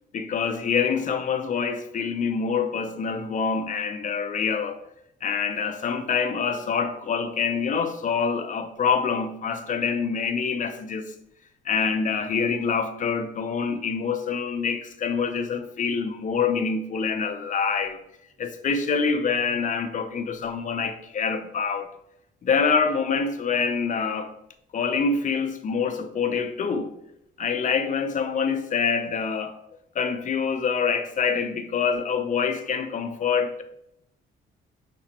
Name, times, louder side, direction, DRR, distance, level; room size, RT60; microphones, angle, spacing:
voice 1, 0.1-4.8 5.2-11.1 11.6-18.0 18.4-21.9 22.4-24.3 24.7-26.9 27.4-29.5 30.0-33.6, left 5 dB, 40° left, 0.5 m, -26 dB
5.8 x 2.1 x 2.8 m
cardioid pair, 90°, 20 cm